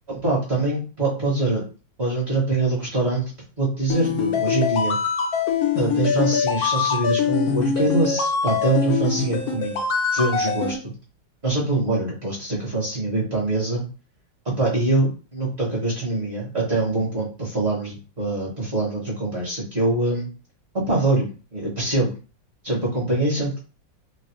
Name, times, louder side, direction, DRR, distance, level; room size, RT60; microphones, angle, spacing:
voice 1, 0.1-1.6 2.0-3.3 3.6-5.0 5.8-9.8 10.1-10.9 11.4-13.8 14.6-20.3 20.7-22.1 22.6-23.6, right 2 dB, 40° right, -5 dB, 1.2 m, -24 dB
sound 1, 3.9-10.7, left 6 dB, 65° left, 0.9 m, -23 dB
3.2 x 2.8 x 3.0 m, 0.35 s
omnidirectional pair, 2.1 m